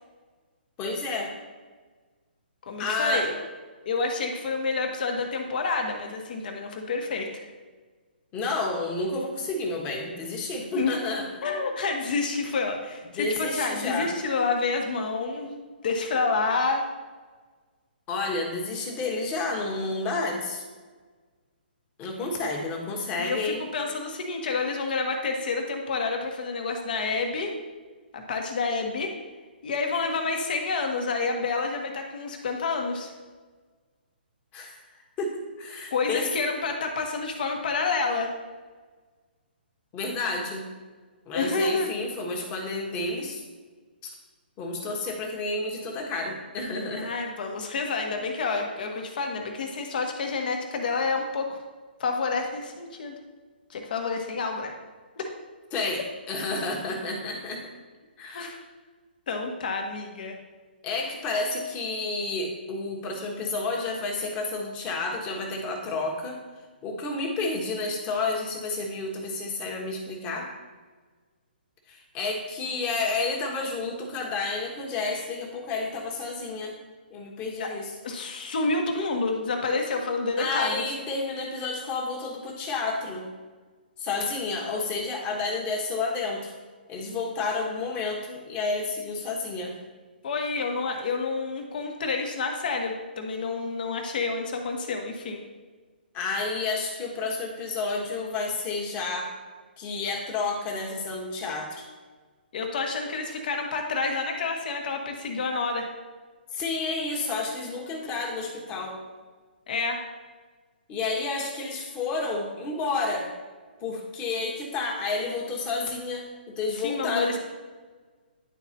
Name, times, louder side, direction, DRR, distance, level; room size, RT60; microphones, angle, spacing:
voice 1, 0.8-1.3 2.8-3.3 8.3-11.3 13.1-14.1 18.1-20.6 22.0-23.6 34.5-34.8 35.2-36.3 39.9-40.6 41.3-43.4 44.0-44.1 44.6-47.1 55.7-56.0 56.3-57.7 58.2-58.5 60.8-66.4 66.8-70.5 71.9-76.8 77.1-77.9 80.4-83.3 84.0-86.5 86.9-89.8 96.1-99.3 99.8-101.9 106.5-109.0 110.9-113.3 113.8-117.4, left 3 dB, 25° left, 0 dB, 1.3 m, -30 dB
voice 2, 2.6-3.4 3.8-7.5 10.7-11.0 11.4-15.6 15.8-16.9 23.2-27.5 28.1-29.1 29.6-33.1 35.9-38.3 41.3-41.9 47.0-51.6 52.0-53.1 53.7-54.7 55.2-55.3 58.3-58.6 59.3-60.4 77.6-77.7 78.0-80.8 90.2-95.4 102.5-105.9 109.7-110.0 116.8-117.4, left 4 dB, 55° left, 3 dB, 1.2 m, -29 dB
10.5 x 4.1 x 2.9 m, 1.4 s
hypercardioid pair, 140°, 6 cm